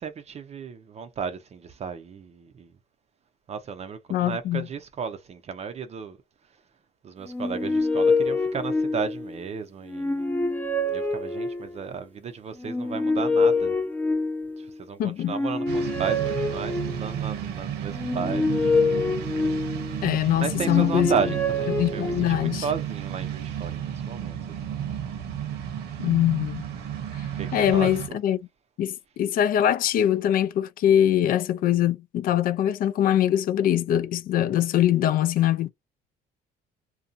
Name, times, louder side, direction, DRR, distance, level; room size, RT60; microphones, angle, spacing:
voice 1, 0.0-2.7 3.5-6.2 7.0-10.3 10.9-13.8 14.6-18.6 20.3-24.4 27.4-28.2, right 6 dB, 40° right, 0.5 m, -34 dB
voice 2, 4.1-4.7 15.0-15.3 20.0-21.1 21.8-22.7 26.0-26.7 27.2-28.4 28.8-35.7, left 11 dB, 60° left, 0.4 m, -23 dB
sound 1, 7.3-9.4 9.9-11.9 12.6-14.7 15.2-17.2 17.9-20.1 20.5-22.6, left 2 dB, 10° left, 0.5 m, -26 dB
sound 2, 15.7-28.1, right 9 dB, 80° right, 0.9 m, -33 dB
2.6 x 2.2 x 2.5 m
cardioid pair, 110°, 17 cm